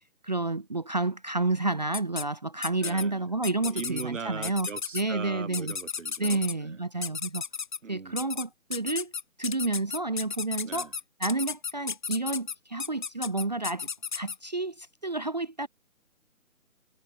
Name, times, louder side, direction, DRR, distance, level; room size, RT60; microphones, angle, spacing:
voice 1, 0.2-4.7 4.9-5.7 6.2-7.4 7.9-9.1 9.4-10.9 11.2-13.9 14.1-15.7, right 2 dB, 30° right, 0.6 m, -30 dB
sound 1, 1.9-2.2 2.6-3.0 3.4-4.0 4.4-5.0 5.5-6.5 7.0-7.8 8.2-8.4 8.7-14.4, left 6 dB, 35° left, 1.1 m, -33 dB
voice 2, 2.8-3.2 3.6-6.8 7.8-8.3 10.6-10.9, right 5 dB, 60° right, 2.0 m, -40 dB
figure-of-eight pair, 150°, 43 cm